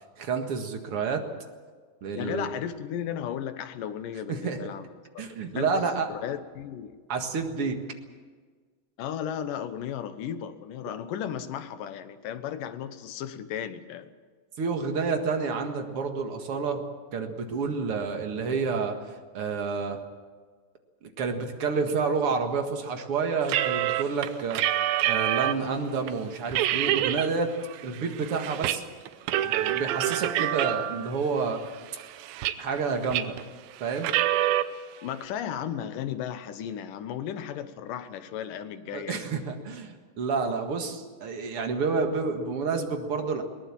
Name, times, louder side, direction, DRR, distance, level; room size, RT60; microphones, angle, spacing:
voice 1, 0.2-1.3 2.0-2.5 4.3-4.6 5.2-6.1 7.1-7.8 14.6-16.8 17.1-19.0 19.3-20.0 21.2-24.6 25.0-27.5 27.8-28.8 29.3-31.6 32.6-33.4 33.8-34.1 38.9-43.4, right 5 dB, 45° right, 5 dB, 2.3 m, -29 dB
voice 2, 2.2-7.0 9.0-14.1 35.0-39.2, left 9 dB, 70° left, 11 dB, 2.5 m, -35 dB
sound 1, 23.5-25.7 26.1-26.2 26.5-27.3 27.7-28.8 29.1-31.1 31.7-32.8 33.1-33.4 34.0-34.6, right 13 dB, 85° right, 2.6 m, -26 dB
22.0 x 19.0 x 7.4 m, 1.5 s
omnidirectional pair, 4.2 m